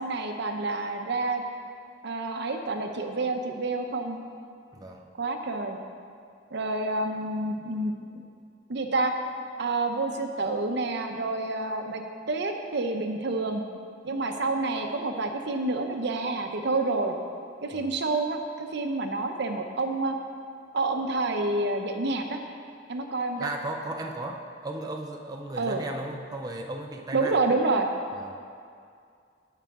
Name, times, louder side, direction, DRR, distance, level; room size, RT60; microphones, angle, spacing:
voice 1, 0.0-1.4 2.0-4.2 5.2-5.8 6.5-8.2 8.7-9.1 9.6-13.6 14.0-17.2 17.6-20.2 20.7-22.4 22.9-23.5 25.6-25.8 27.1-27.9, right 2 dB, 65° right, 5 dB, 0.7 m, -28 dB
voice 2, 4.7-5.1 17.7-17.9 23.4-27.4 28.1-28.4, right 2 dB, 20° right, 2 dB, 0.5 m, -36 dB
16.0 x 5.7 x 3.6 m, 2.3 s
head